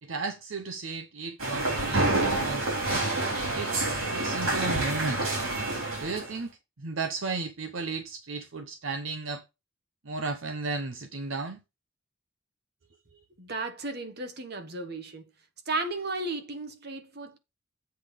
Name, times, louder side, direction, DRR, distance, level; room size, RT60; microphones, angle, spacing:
voice 1, 0.0-2.7 3.5-5.3 6.0-9.4 10.0-11.6, right 3 dB, 70° right, 0.8 m, -34 dB
sound 1, 1.4-6.3, right 2 dB, 90° right, 3.5 m, -28 dB
voice 2, 13.4-15.3 15.7-17.4, right 2 dB, 50° right, 1.4 m, -34 dB
8.1 x 3.6 x 6.6 m
head